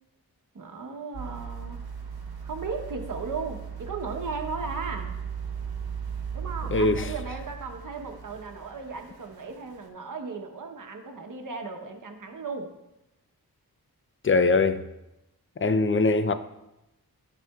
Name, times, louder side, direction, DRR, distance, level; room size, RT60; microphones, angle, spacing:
voice 1, 0.5-1.8 2.4-5.1 6.3-12.7, right 4 dB, 55° right, 1.0 m, -36 dB
sound 1, 1.1-9.4 9.8-9.9, right 7 dB, 75° right, 1.1 m, -37 dB
voice 2, 6.7-7.0 14.2-14.8 15.6-16.3, left 3 dB, 35° left, 0.5 m, -22 dB
11.0 x 5.3 x 2.3 m
cardioid pair, 40°, 38 cm